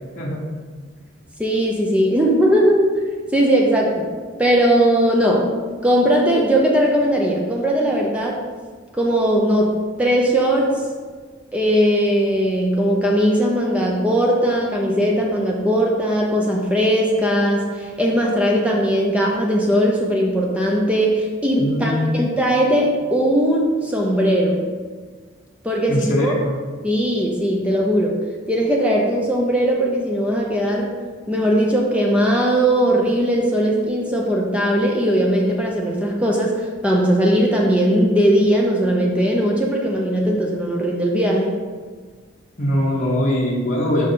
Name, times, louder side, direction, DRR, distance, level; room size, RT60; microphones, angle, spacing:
voice 1, 1.4-2.9 3.3-4.1 4.4-5.5 5.8-8.4 8.9-10.8 11.5-24.7 25.6-26.3 26.8-31.0 31.3-41.6, equal, 5° right, -2 dB, 0.6 m, -19 dB
voice 2, 21.6-22.3 25.9-26.5 42.6-44.1, left 1 dB, 40° left, -4 dB, 0.9 m, -21 dB
6.2 x 5.1 x 3.8 m, 1.5 s
head